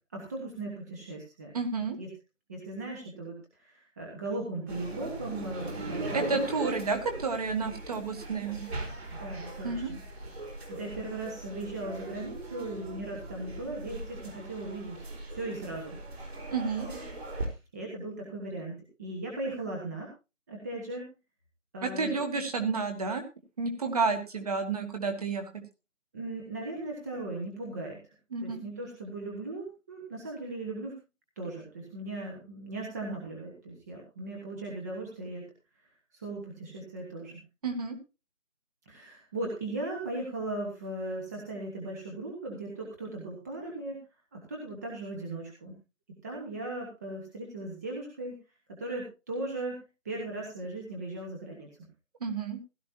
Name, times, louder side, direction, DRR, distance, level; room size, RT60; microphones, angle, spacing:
voice 1, 0.1-1.5 2.0-2.1 2.5-6.8 9.2-10.0 10.7-16.3 16.9-18.7 19.0-20.1 20.5-21.0 21.7-22.2 26.1-28.1 28.4-30.9 31.4-35.5 36.1-37.4 38.9-44.0 44.3-45.7 46.2-48.4 48.7-51.7, right 2 dB, 15° right, -1 dB, 1.3 m, -38 dB
voice 2, 1.5-2.0 6.1-8.7 9.6-9.9 16.5-16.9 21.8-23.2 23.6-25.5 28.3-28.6 37.6-38.0 52.2-52.6, right 4 dB, 30° right, 5 dB, 2.0 m, -30 dB
sound 1, 4.7-17.5, right 2 dB, 50° right, 4.6 m, -40 dB
16.0 x 12.5 x 2.8 m, 0.28 s
figure-of-eight pair, 165°, 39 cm